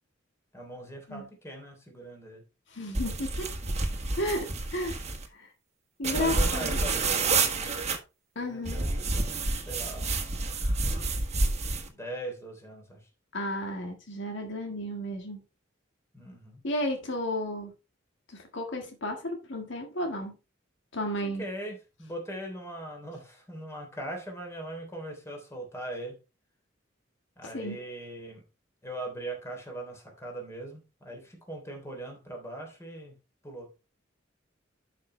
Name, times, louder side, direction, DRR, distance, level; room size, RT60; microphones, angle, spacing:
voice 1, 0.5-2.4 6.1-7.8 8.4-10.4 11.9-13.1 16.1-16.6 21.2-26.2 27.4-28.4 28.8-33.1 33.4-33.7, right 1 dB, 15° left, 3.3 m, -40 dB
voice 2, 2.7-3.5 4.2-5.0 5.3-5.5 6.0-6.8 8.4-8.8 13.3-15.4 16.6-17.7 18.3-20.3 20.9-21.4 27.4-27.8, left 1 dB, 65° left, 1.7 m, -33 dB
sound 1, 2.9-5.3 6.0-8.0 8.7-11.9, right 3 dB, 35° right, 1.6 m, -29 dB
11.5 x 5.9 x 3.3 m
head